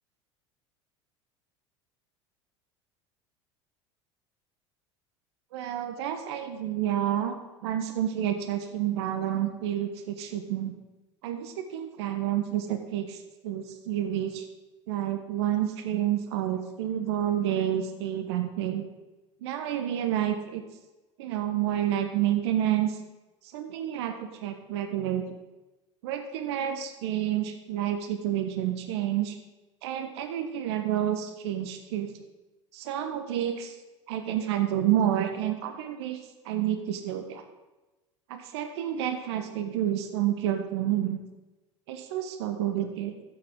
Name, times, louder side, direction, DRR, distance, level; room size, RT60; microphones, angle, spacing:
voice 1, 5.5-7.4 7.6-10.7 11.2-13.2 13.4-14.4 14.9-18.9 19.4-20.6 21.2-22.9 23.5-24.1 24.4-25.2 26.0-29.3 29.8-32.1 32.7-33.7 34.1-36.2 36.4-37.4 38.3-41.2 41.9-43.1, right 11 dB, 65° right, 8 dB, 1.1 m, -29 dB
14.0 x 7.9 x 3.8 m, 1.1 s
figure-of-eight pair, 70°, 15 cm